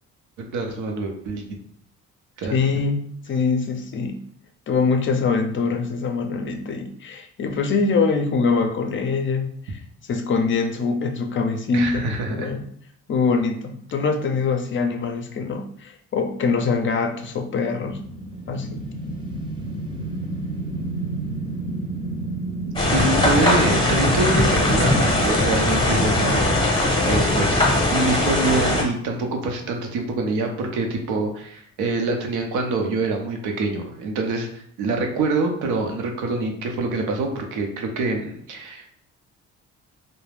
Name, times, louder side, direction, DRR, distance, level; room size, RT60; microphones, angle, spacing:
voice 1, 0.4-1.5 2.4-2.6 11.7-12.5 22.9-26.6 27.0-27.6 27.9-39.0, right 3 dB, 90° right, 3 dB, 0.6 m, -25 dB
voice 2, 2.5-4.2 4.7-9.8 10.1-12.6 13.1-18.0 18.5-18.8, left 4 dB, 40° left, 5 dB, 0.5 m, -23 dB
sound 1, 17.9-30.0, right 2 dB, 15° right, 0.6 m, -32 dB
sound 2, 22.8-28.8, left 1 dB, 15° left, 0.8 m, -20 dB
2.3 x 2.1 x 3.2 m, 0.64 s
cardioid pair, 90°, 30 cm